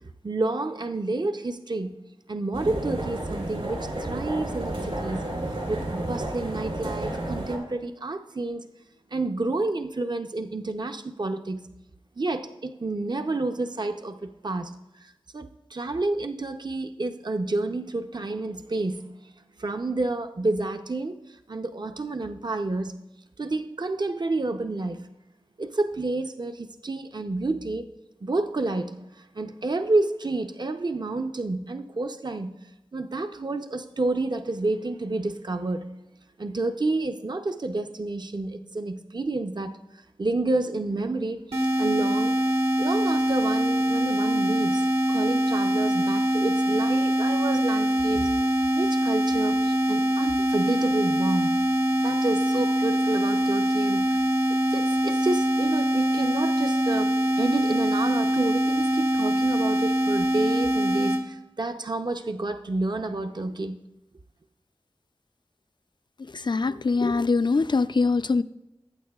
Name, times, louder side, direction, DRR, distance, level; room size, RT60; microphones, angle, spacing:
voice 1, 0.2-2.0 2.3-5.3 5.7-8.6 9.1-11.7 12.2-19.2 19.6-21.2 21.5-23.0 23.4-25.1 25.6-27.9 28.2-32.6 32.9-36.0 36.4-39.8 40.2-42.4 42.8-44.8 45.1-48.4 48.7-51.7 52.0-54.3 54.7-63.8, right 2 dB, 45° right, 0.6 m, -29 dB
sound 1, 2.5-7.6, right 1 dB, 70° right, 3.1 m, -31 dB
sound 2, 41.5-61.2, right 1 dB, 90° right, 1.5 m, -23 dB
voice 2, 66.3-68.4, left 4 dB, 50° left, 0.4 m, -23 dB
18.5 x 8.6 x 2.3 m
wide cardioid pair, 45°, 10 cm